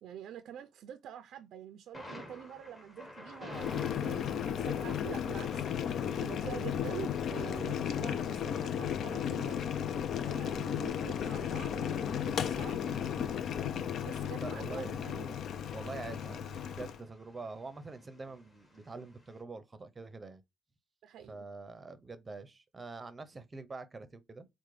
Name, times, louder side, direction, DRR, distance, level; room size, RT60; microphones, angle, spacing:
voice 1, 0.0-5.7 6.1-9.6 10.2-12.9 14.0-15.4 21.0-21.4, right 10 dB, 80° right, 0.4 m, -46 dB
Thunder, 1.9-19.4, left 1 dB, 25° left, 1.8 m, -54 dB
Boiling, 3.5-17.0, left 8 dB, 70° left, 0.4 m, -34 dB
voice 2, 14.4-15.0 15.7-20.4 21.3-24.5, right 3 dB, 30° right, 0.6 m, -45 dB
4.8 x 2.1 x 3.1 m
cardioid pair, 90°, 0 cm